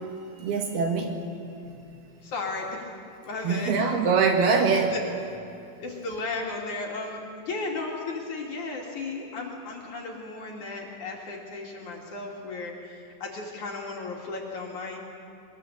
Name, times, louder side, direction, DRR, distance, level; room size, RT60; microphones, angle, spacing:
voice 1, 0.4-1.2 3.4-5.0, right 5 dB, 65° right, 3 dB, 3.3 m, -23 dB
voice 2, 2.2-2.9 3.2-3.7 4.7-5.0 5.8-15.0, left 3 dB, 45° left, -1 dB, 3.5 m, -35 dB
23.0 x 21.5 x 8.2 m, 2.7 s
omnidirectional pair, 5.4 m